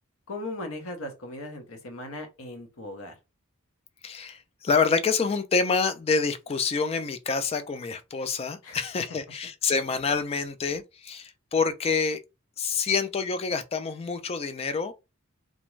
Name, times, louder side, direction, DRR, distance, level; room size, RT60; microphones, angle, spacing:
voice 1, 0.3-3.2 8.6-9.2, left 1 dB, 70° left, 0.8 m, -38 dB
voice 2, 4.0-12.2 12.6-14.9, left 5 dB, 25° left, 0.3 m, -27 dB
2.5 x 2.2 x 3.0 m
head